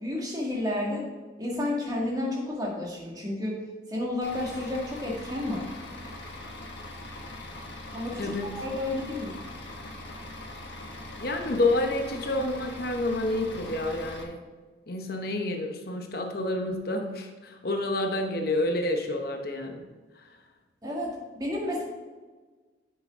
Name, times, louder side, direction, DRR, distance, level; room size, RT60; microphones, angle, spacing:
voice 1, 0.0-1.1 1.4-3.6 3.9-5.7 7.9-9.4 20.8-21.8, left 1 dB, 20° right, -3 dB, 1.9 m, -31 dB
Bus / Idling, 4.2-14.2, left 1 dB, 85° left, 1.4 m, -41 dB
voice 2, 11.2-14.4 14.9-19.8 20.2-20.3, left 2 dB, 55° left, 4 dB, 0.9 m, -29 dB
10.5 x 6.4 x 3.6 m, 1.3 s
head